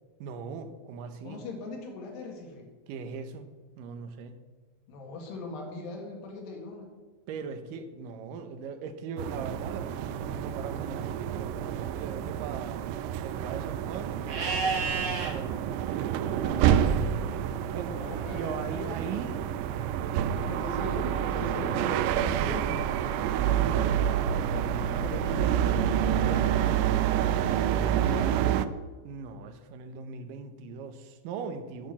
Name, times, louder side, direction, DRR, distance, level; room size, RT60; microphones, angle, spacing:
voice 1, 0.2-1.5 2.9-4.4 7.3-12.9 13.2-15.6 16.3-17.2 17.7-18.0 18.3-19.5 20.0-20.3 23.4-26.5 29.0-31.9, right 5 dB, 75° right, 8 dB, 2.2 m, -40 dB
voice 2, 1.2-2.7 4.9-6.9 17.7-18.5 18.8-19.5 20.4-23.5 25.0-25.5 25.9-26.8 27.2-28.6, left 3 dB, 90° left, 1 dB, 4.0 m, -40 dB
sound 1, 9.2-28.7, right 10 dB, 90° right, 2.7 m, -28 dB
Livestock farm animals working animals, 14.3-15.3 18.1-19.1, right 4 dB, 45° right, 2.5 m, -32 dB
10.5 x 6.1 x 8.6 m, 1.3 s
omnidirectional pair, 4.7 m